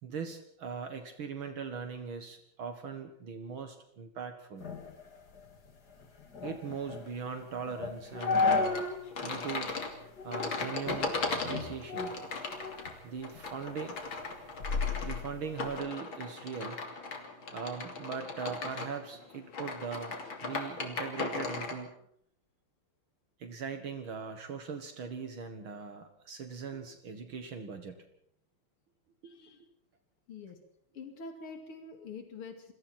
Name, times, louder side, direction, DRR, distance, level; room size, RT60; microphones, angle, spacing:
voice 1, 0.0-4.7 6.4-8.9 9.2-9.8 10.2-12.2 13.0-14.0 15.0-16.8 17.5-21.9 23.4-28.0 29.2-29.3, right 6 dB, 70° right, 7 dB, 2.4 m, -40 dB
sound 1, 4.6-9.1 9.4-9.5 10.2-10.5 10.9-12.9 13.3-15.8, left 4 dB, 45° left, 2.9 m, -34 dB
sound 2, 8.2-21.8, left 3 dB, 65° left, 3.5 m, -38 dB
voice 2, 29.2-29.6 30.3-30.6 30.9-32.7, left 4 dB, 85° left, 4 dB, 3.4 m, -45 dB
29.0 x 22.0 x 4.5 m, 0.70 s
omnidirectional pair, 2.3 m